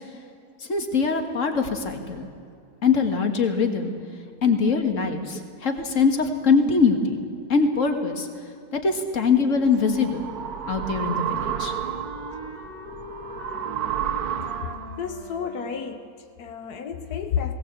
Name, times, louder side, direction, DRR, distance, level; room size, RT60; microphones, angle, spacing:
voice 1, 0.7-2.3 2.8-3.9 4.4-7.2 7.5-8.3 8.7-10.3 10.7-11.7, left 5 dB, 55° left, 6 dB, 2.1 m, -22 dB
sound 1, 9.3-15.1, right 9 dB, 75° right, 1.3 m, -31 dB
Wind instrument woodwind instrument, 10.6-16.2, left 1 dB, 30° left, 1.9 m, -41 dB
voice 2, 15.0-17.5, left 7 dB, 90° left, 7 dB, 1.5 m, -31 dB
19.0 x 18.5 x 8.1 m, 2.5 s
omnidirectional pair, 1.6 m